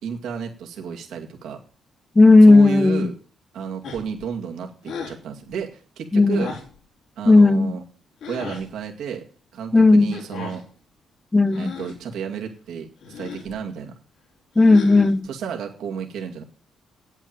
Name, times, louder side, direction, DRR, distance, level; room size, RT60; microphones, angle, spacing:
voice 1, 0.0-1.6 2.5-3.1 3.5-6.5 7.2-7.8 8.3-9.2 9.5-10.6 11.6-12.9 13.2-13.9 15.3-16.4, right 7 dB, 85° right, 2.2 m, -32 dB
voice 2, 2.2-3.1 6.1-6.5 7.3-7.7 9.7-10.2 11.3-11.7 14.6-15.3, left 3 dB, 20° left, 0.6 m, -14 dB
sound 1, 3.8-4.2 4.8-5.2 6.3-6.8 8.2-8.7 10.1-10.6 11.5-12.0 13.0-13.5 14.6-15.3, left 5 dB, 85° left, 3.7 m, -35 dB
9.0 x 8.8 x 9.0 m
cardioid pair, 85°, 0 cm